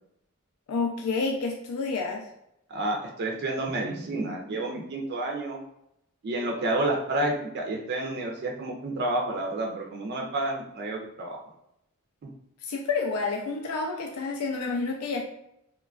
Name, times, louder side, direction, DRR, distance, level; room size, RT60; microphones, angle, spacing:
voice 1, 0.7-2.3 12.6-15.2, left 4 dB, 85° left, 0 dB, 0.4 m, -29 dB
voice 2, 2.7-5.6 6.2-11.4, right 2 dB, 50° right, 0 dB, 0.4 m, -30 dB
3.0 x 2.2 x 2.3 m, 0.81 s
head